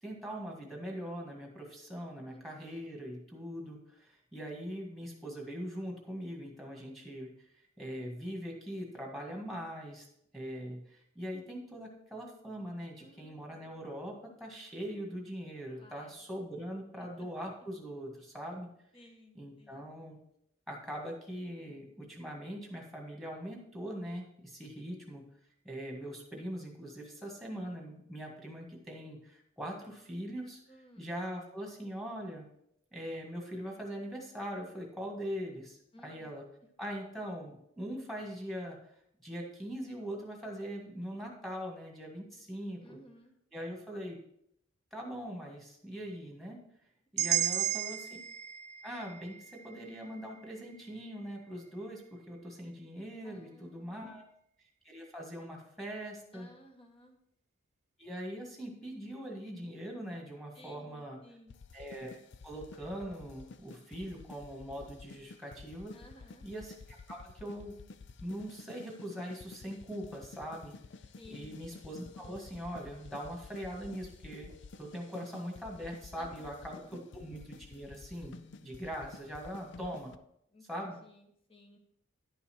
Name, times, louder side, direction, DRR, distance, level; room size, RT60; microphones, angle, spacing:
voice 1, 0.0-10.1 10.3-18.7 19.4-20.2 20.7-25.2 25.6-30.6 31.0-32.5 32.9-36.4 36.8-38.8 39.2-43.0 43.5-44.2 44.9-46.6 47.1-48.1 48.8-54.2 54.8-56.5 58.0-61.2 61.7-66.0 66.4-67.8 68.2-70.7 71.3-74.5 74.8-80.1 80.7-81.0, equal, ahead, 0 dB, 1.7 m, -42 dB
voice 2, 2.3-2.7 13.0-13.8 15.8-16.2 17.0-17.3 17.6-17.7 18.9-20.0 30.7-31.1 35.9-36.3 42.8-43.3 47.3-47.8 53.2-54.3 56.3-57.2 60.5-61.6 65.9-66.5 71.2-71.6 76.2-77.0 80.5-81.8, left 1 dB, 25° left, 4 dB, 1.2 m, -57 dB
sound 1, 47.2-51.2, right 12 dB, 30° right, 0.3 m, -35 dB
sound 2, 61.5-80.2, left 4 dB, 55° left, 0.5 m, -51 dB
11.0 x 5.6 x 4.4 m, 0.73 s
head